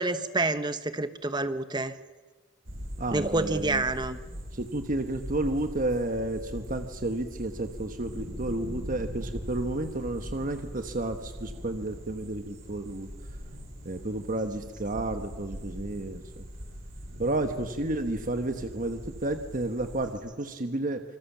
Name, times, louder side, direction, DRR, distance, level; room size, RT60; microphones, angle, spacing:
voice 1, 0.0-1.9 3.1-4.2, right 2 dB, 20° right, 11 dB, 1.0 m, -28 dB
sound 1, 2.6-20.1, equal, 70° right, 7.1 m, -41 dB
voice 2, 3.0-3.8 4.5-13.1 13.8-16.4 17.2-21.0, right 2 dB, 40° right, 7 dB, 1.2 m, -31 dB
26.5 x 24.5 x 7.3 m, 1.3 s
head